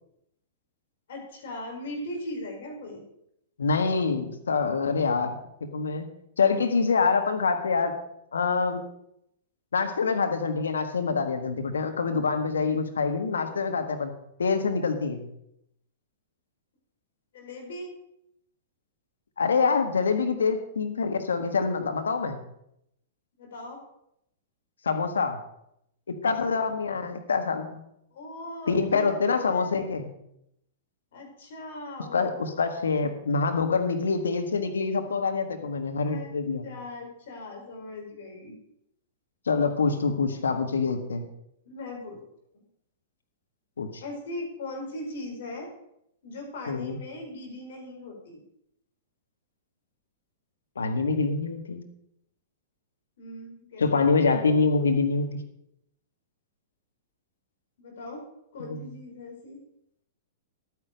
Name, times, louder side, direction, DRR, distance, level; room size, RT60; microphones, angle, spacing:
voice 1, 1.1-3.0 17.3-17.9 23.4-23.8 28.1-29.6 31.1-32.4 36.0-36.3 36.6-38.6 41.6-42.2 42.5-42.6 44.0-45.7 46.2-48.4 53.2-54.1 57.8-58.3 58.5-59.6, left 1 dB, 65° left, 1 dB, 4.7 m, -39 dB
voice 2, 3.6-5.4 5.7-6.1 6.4-8.0 8.3-8.8 9.7-14.1 14.4-15.2 19.4-22.4 24.8-25.4 26.2-27.8 28.7-30.1 32.1-36.7 39.5-41.3 43.8-44.0 46.7-47.0 50.7-51.8 53.8-55.4 58.7-58.8, left 4 dB, 80° left, 6 dB, 1.5 m, -25 dB
12.0 x 9.6 x 5.2 m, 0.78 s
hypercardioid pair, 110°, 0 cm